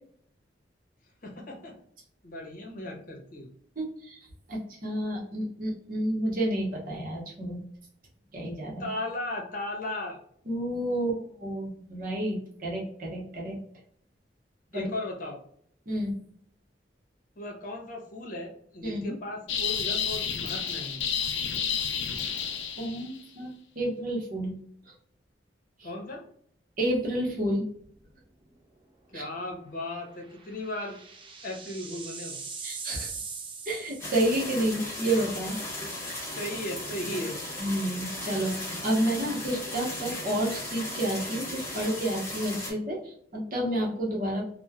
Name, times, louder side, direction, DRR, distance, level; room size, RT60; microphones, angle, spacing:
voice 1, 1.2-1.7 2.2-3.5 8.8-10.2 14.7-15.4 17.4-21.0 25.8-26.2 29.1-31.0 31.4-32.4 36.4-37.3, left 1 dB, 50° left, 0 dB, 0.8 m, -36 dB
voice 2, 3.8-4.2 4.5-7.6 8.3-8.8 10.5-13.6 14.7-14.9 15.9-16.1 18.8-19.1 22.8-24.5 25.8-25.9 26.8-27.7 29.1-29.3 32.6-33.1 33.7-35.6 37.6-44.4, right 1 dB, 50° right, -2 dB, 0.8 m, -30 dB
sound 1, 19.5-23.2, left 7 dB, 80° left, 0.4 m, -30 dB
sound 2, 27.8-28.2 28.5-28.6 30.0-34.7, right 5 dB, 30° right, 0.5 m, -41 dB
sound 3, 34.0-42.7, left 1 dB, 15° left, 0.9 m, -36 dB
3.0 x 2.1 x 2.2 m, 0.64 s
head